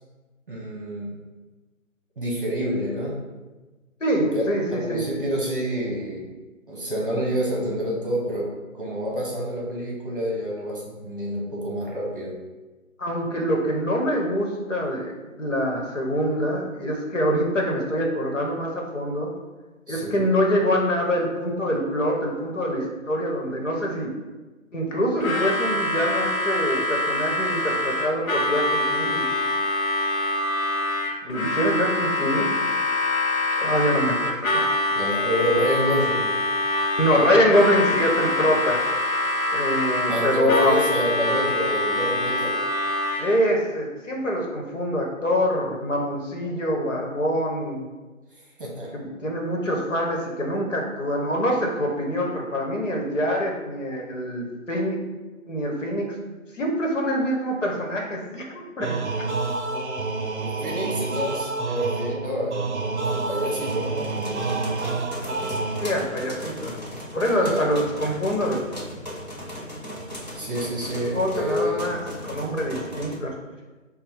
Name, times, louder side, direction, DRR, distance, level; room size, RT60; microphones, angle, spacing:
voice 1, 0.5-1.1 2.2-3.2 4.3-4.4 4.7-6.3 6.7-12.3 19.9-20.2 34.9-36.3 40.1-42.6 48.6-48.9 60.4-64.5 67.4-67.6 70.3-71.9, equal, 40° right, -3 dB, 1.0 m, -28 dB
voice 2, 4.0-5.0 13.0-15.1 15.4-19.3 19.9-24.1 24.7-29.2 31.2-32.5 33.6-34.7 37.0-39.0 39.5-40.8 43.2-47.9 48.9-55.0 55.5-56.1 56.5-59.2 65.8-66.8 67.1-68.6 71.1-72.0 72.3-73.3, equal, 65° left, 0 dB, 1.1 m, -25 dB
Harmonica, 25.2-43.4, left 2 dB, 80° left, 0.9 m, -25 dB
sound 1, 58.8-66.2, right 3 dB, 55° right, 0.6 m, -28 dB
sound 2, 63.3-73.2, equal, 30° left, 0.7 m, -37 dB
6.6 x 2.2 x 3.5 m, 1.2 s
figure-of-eight pair, 155°, 41 cm